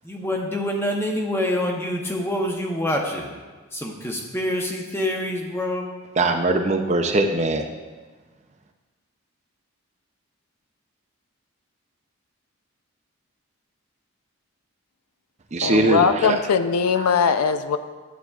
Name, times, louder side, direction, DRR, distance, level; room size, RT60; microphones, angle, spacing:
voice 1, 0.0-3.3 3.7-5.9, left 1 dB, 10° left, 1 dB, 0.8 m, -26 dB
voice 2, 6.2-7.7 15.5-16.4 17.0-17.1, right 2 dB, 30° right, 5 dB, 0.5 m, -21 dB
voice 3, 15.6-17.8, left 6 dB, 90° left, 11 dB, 0.4 m, -20 dB
11.5 x 8.0 x 2.4 m, 1.3 s
head